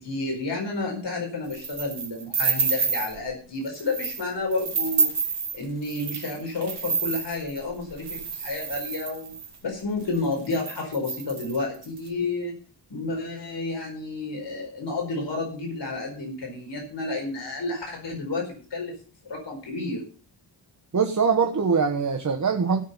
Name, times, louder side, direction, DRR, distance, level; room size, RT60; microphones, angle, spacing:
voice 1, 0.0-5.1 5.5-9.4 9.6-12.5 12.9-18.9 19.2-20.0, left 2 dB, 65° left, 1 dB, 4.7 m, -30 dB
sound 1, 1.5-3.2 3.6-4.2 4.5-9.6 10.1-10.2 10.4-12.0, right 4 dB, 60° right, 3.0 m, -29 dB
voice 2, 20.9-22.8, right 5 dB, 40° right, 5 dB, 1.2 m, -22 dB
16.5 x 6.8 x 5.5 m, 0.40 s
wide cardioid pair, 140°, 45 cm